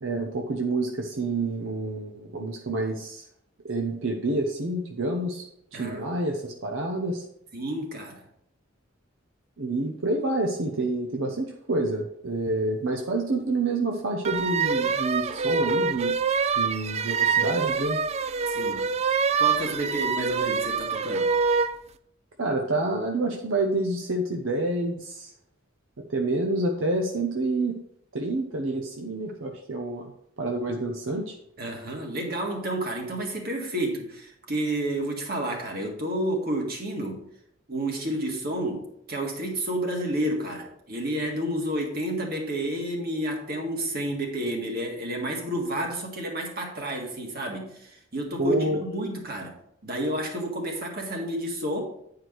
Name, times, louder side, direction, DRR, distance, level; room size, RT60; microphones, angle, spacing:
voice 1, 0.0-3.2 3.6-5.4 5.7-7.2 9.6-16.2 16.6-18.0 22.4-25.3 26.1-27.8 28.1-30.1 30.4-31.4 48.4-48.8, right 2 dB, 80° right, 2 dB, 0.9 m, -28 dB
voice 2, 7.5-8.2 18.5-18.9 19.4-21.3 31.6-37.2 37.7-49.5 49.8-51.8, right 1 dB, 50° right, 1 dB, 1.9 m, -30 dB
sound 1, 14.2-21.8, right 5 dB, 35° right, 0.3 m, -25 dB
9.2 x 4.8 x 4.6 m, 0.73 s
head